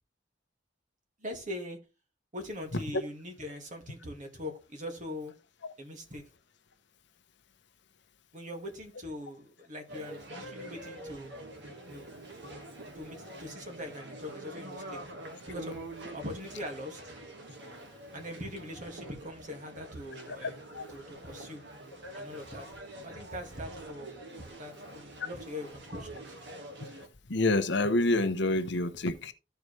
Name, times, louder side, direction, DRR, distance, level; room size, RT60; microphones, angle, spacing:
voice 1, 1.2-1.8 2.3-5.3 5.8-6.2 8.3-11.3 11.9-12.1 12.9-15.0 15.5-17.0 18.1-20.6 20.9-21.6 22.1-22.7 23.0-26.4, left 1 dB, 45° right, 2.1 m, -42 dB
sound 1, 9.9-27.1, right 1 dB, 65° right, 1.7 m, -46 dB
voice 2, 20.4-20.9 27.3-29.3, left 2 dB, 65° left, 0.9 m, -28 dB
14.0 x 4.7 x 3.2 m
head